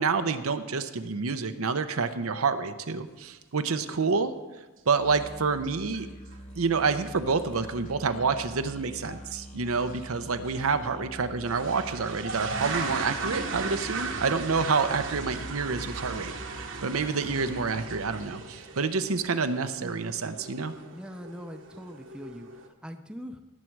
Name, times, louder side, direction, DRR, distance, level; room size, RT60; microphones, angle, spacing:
voice 1, 0.0-4.3 4.9-6.1 6.6-20.7, right 4 dB, 85° right, 9 dB, 0.8 m, -28 dB
Musical instrument, 5.0-16.7, equal, 30° left, 1.0 m, -46 dB
sound 1, 5.1-5.2 5.5-6.0 6.3-6.4 6.9-7.0 7.3-7.4 9.0-9.2 9.8-10.0 10.5-10.6 11.4-22.7, right 4 dB, 60° right, 1.1 m, -37 dB
voice 2, 20.9-22.5 22.8-23.4, equal, 5° right, 7 dB, 0.5 m, -41 dB
17.5 x 7.4 x 4.7 m, 1.2 s
head